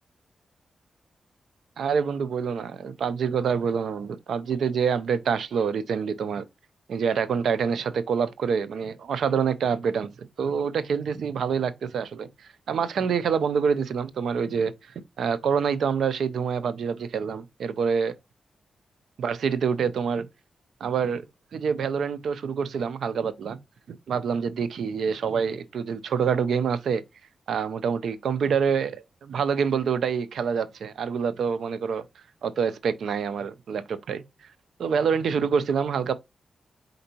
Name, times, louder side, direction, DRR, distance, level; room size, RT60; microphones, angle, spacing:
voice 1, 1.8-6.4 6.9-12.3 12.7-14.7 15.2-18.1 19.2-20.3 20.8-21.2 21.5-23.6 23.9-27.0 27.5-32.0 32.4-34.2 34.8-36.1, right 6 dB, 85° right, 0.4 m, -26 dB
4.4 x 3.9 x 2.8 m
cardioid pair, 75°, 0 cm